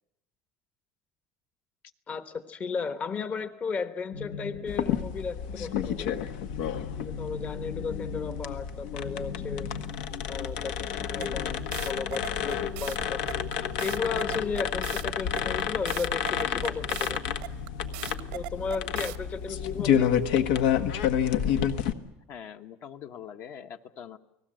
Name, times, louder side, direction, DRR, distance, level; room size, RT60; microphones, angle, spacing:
voice 1, 2.1-6.2 7.0-9.7 10.2-13.2 13.8-17.2 18.3-20.2, left 5 dB, 30° left, 10 dB, 1.0 m, -34 dB
sound 1, 4.1-20.3, left 7 dB, 70° left, 1.7 m, -41 dB
sound 2, 4.7-21.9, left 9 dB, 90° left, 1.4 m, -30 dB
sound 3, 11.2-19.2, right 20 dB, 90° right, 1.1 m, -39 dB
voice 2, 22.3-24.2, left 8 dB, 50° left, 7 dB, 1.2 m, -43 dB
29.5 x 19.0 x 7.7 m, 0.87 s
cardioid pair, 145°, 5 cm